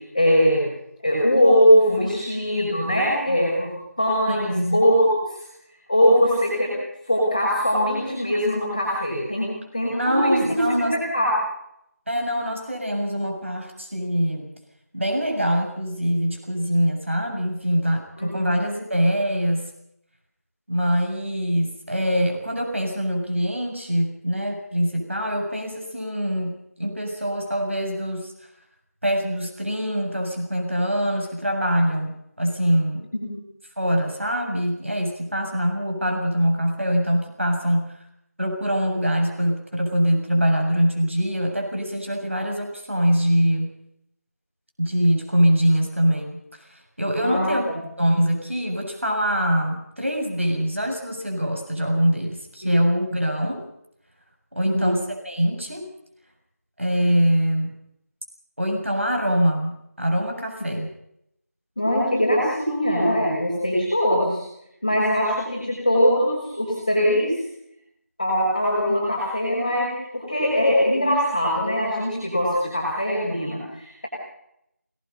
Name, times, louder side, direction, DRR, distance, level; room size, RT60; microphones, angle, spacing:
voice 1, 0.1-0.6 1.0-5.1 5.9-6.7 7.1-10.6 11.1-11.3 18.2-18.6 33.1-33.3 47.2-47.5 54.6-55.0 61.8-64.4 64.8-67.3 68.2-69.9 70.1-74.1, equal, 10° left, -12 dB, 4.5 m, -21 dB
voice 2, 4.3-4.8 9.9-11.0 12.1-14.5 14.9-19.7 20.7-28.3 29.0-32.1 32.4-33.1 33.8-38.0 38.4-43.7 44.8-47.7 48.0-53.6 54.5-55.9 56.8-57.7 58.6-60.9, equal, 50° right, 3 dB, 7.0 m, -23 dB
25.0 x 19.5 x 5.5 m, 0.76 s
figure-of-eight pair, 175°, 9 cm